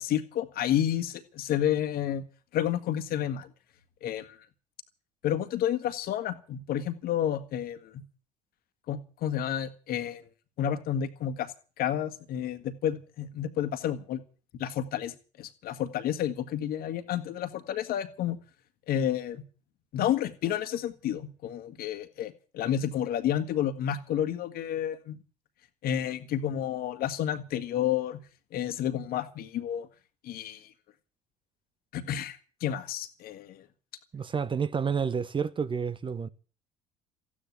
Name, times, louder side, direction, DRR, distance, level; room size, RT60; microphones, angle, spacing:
voice 1, 0.0-2.2 2.5-3.5 4.0-4.4 5.2-8.0 8.9-10.3 10.6-11.5 11.8-14.2 14.6-18.4 18.9-19.4 19.9-25.2 25.8-28.2 28.5-29.9 30.2-30.7 31.9-33.6, left 10 dB, 50° left, 1.9 m, -30 dB
voice 2, 34.1-36.3, right 6 dB, 25° right, 1.0 m, -29 dB
15.0 x 9.9 x 9.6 m
figure-of-eight pair, 60°, 19 cm